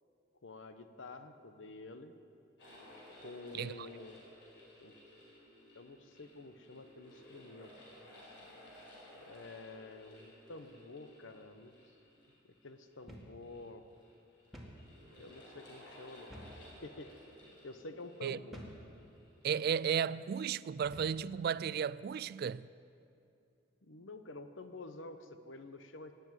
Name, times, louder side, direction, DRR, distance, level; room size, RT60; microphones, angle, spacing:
voice 1, 0.4-2.1 3.2-4.2 4.8-4.9 5.7-7.7 9.2-11.7 12.4-13.8 15.2-16.3 16.8-17.1 17.6-18.6 23.8-26.1, left 2 dB, 85° left, 1.0 m, -49 dB
sound 1, 2.6-21.2, left 1 dB, 65° left, 5.0 m, -58 dB
sound 2, 13.1-13.4 13.7-13.8 14.5-14.8 16.3-16.7 17.3-17.5 18.5-18.9 19.6-19.8 20.8-21.2, equal, ahead, 1.9 m, -50 dB
voice 2, 19.4-22.7, right 7 dB, 55° right, 0.3 m, -34 dB
18.0 x 8.0 x 9.6 m
head